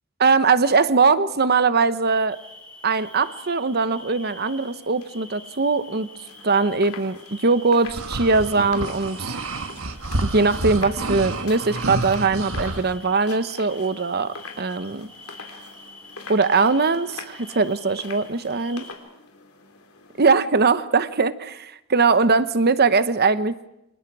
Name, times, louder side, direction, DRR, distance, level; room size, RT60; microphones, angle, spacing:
voice 1, 0.2-2.4 2.8-6.1 6.4-9.4 10.2-15.1 16.3-18.8 20.2-23.5, right 4 dB, 50° right, 13 dB, 1.0 m, -21 dB
sound 1, 2.3-18.9, left 1 dB, 5° left, 4.1 m, -46 dB
sound 2, 4.2-20.2, left 4 dB, 85° left, 3.6 m, -45 dB
sound 3, 7.9-12.8, right 2 dB, 75° right, 1.7 m, -29 dB
28.5 x 27.0 x 4.8 m, 0.86 s
head